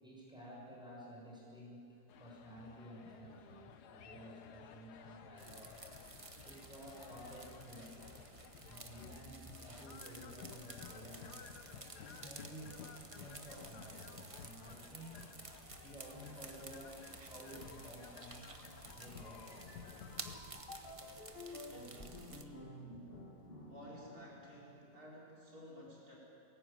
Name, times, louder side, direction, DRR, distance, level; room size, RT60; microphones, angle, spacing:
voice 1, 0.0-5.8 6.4-8.2 8.6-11.3 11.9-12.8 13.1-15.3 15.8-18.6 18.9-19.8 22.8-23.0, equal, 5° right, -5 dB, 6.6 m, -53 dB
sound 1, 2.1-20.4, left 7 dB, 75° left, 1.4 m, -55 dB
sound 2, 5.4-22.4, right 3 dB, 25° right, 1.0 m, -53 dB
sound 3, 18.4-25.1, left 2 dB, 35° left, 1.9 m, -53 dB
voice 2, 21.6-22.7 23.6-26.2, equal, 65° right, -5 dB, 4.8 m, -54 dB
20.5 x 17.0 x 9.1 m, 2.7 s
omnidirectional pair, 1.7 m